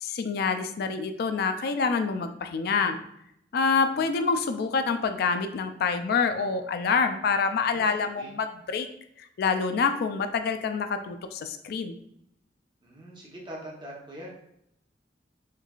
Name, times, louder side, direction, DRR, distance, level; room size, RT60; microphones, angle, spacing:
voice 1, 0.0-3.0 3.5-8.9 9.2-12.0, left 5 dB, 60° left, 7 dB, 0.3 m, -27 dB
voice 2, 7.6-8.3 12.8-14.4, right 1 dB, 25° right, -3 dB, 0.8 m, -43 dB
4.5 x 2.4 x 2.3 m, 0.76 s
head